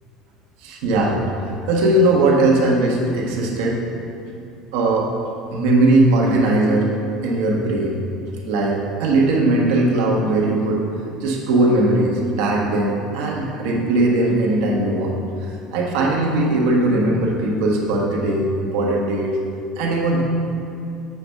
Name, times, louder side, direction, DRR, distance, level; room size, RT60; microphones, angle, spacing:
voice 1, 0.6-3.8 4.7-5.1 5.5-6.9 7.2-8.0 8.5-10.8 11.2-15.1 15.4-19.3 19.8-20.2, right 2 dB, 85° right, -1 dB, 1.2 m, -19 dB
6.9 x 6.4 x 3.5 m, 2.5 s
cardioid pair, 160°, 0 cm